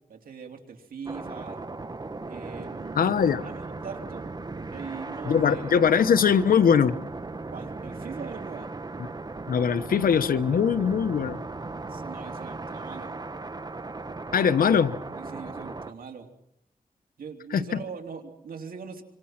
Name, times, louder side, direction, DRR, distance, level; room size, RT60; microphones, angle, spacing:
voice 1, 0.1-1.6 2.3-4.2 4.7-6.1 7.5-8.7 11.8-13.1 15.1-16.3 17.2-19.0, right 6 dB, 90° right, 3 dB, 3.2 m, -41 dB
sound 1, 1.1-15.9, right 3 dB, 30° right, 1.2 m, -37 dB
voice 2, 2.9-3.4 5.2-7.0 9.0-9.1 9.5-11.4 14.3-14.9 17.5-17.8, left 7 dB, 85° left, 11 dB, 1.1 m, -21 dB
26.0 x 25.5 x 6.0 m, 0.74 s
cardioid pair, 80°, 14 cm